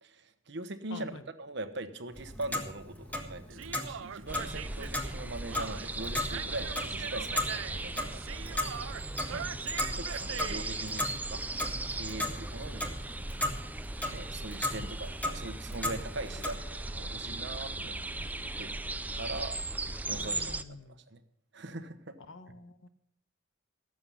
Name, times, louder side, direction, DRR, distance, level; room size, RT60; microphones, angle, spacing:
voice 1, 0.0-1.1 1.4-8.6 9.9-11.4 11.9-12.9 14.1-18.0 18.6-18.7 19.2-19.6 20.1-20.6 20.9-21.2 21.5-22.2, right 2 dB, 60° right, 9 dB, 1.1 m, -41 dB
voice 2, 0.9-1.2 9.3-9.8 12.2-12.3 14.7-14.9 20.1-21.0 22.3-22.9, left 3 dB, 80° left, 11 dB, 1.0 m, -47 dB
Clock, 2.1-16.5, left 1 dB, 10° left, 1.5 m, -37 dB
Human voice, 3.5-10.9, right 8 dB, 85° right, 0.5 m, -42 dB
sound 1, 4.3-20.6, right 2 dB, 10° right, 0.4 m, -38 dB
17.0 x 7.8 x 5.5 m, 0.76 s
head